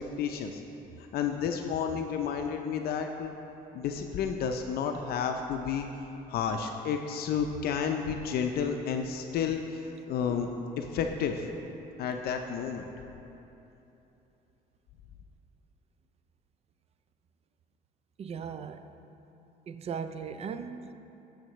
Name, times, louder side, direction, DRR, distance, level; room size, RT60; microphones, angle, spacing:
voice 1, 0.2-0.6 1.1-3.3 3.7-5.9 6.3-10.5 10.8-11.5 12.0-12.9, left 7 dB, 65° left, 5 dB, 0.5 m, -31 dB
voice 2, 18.2-18.9 19.7-20.9, right 6 dB, 40° right, 10 dB, 0.4 m, -38 dB
11.0 x 6.5 x 3.1 m, 3.0 s
cardioid pair, 110°, 17 cm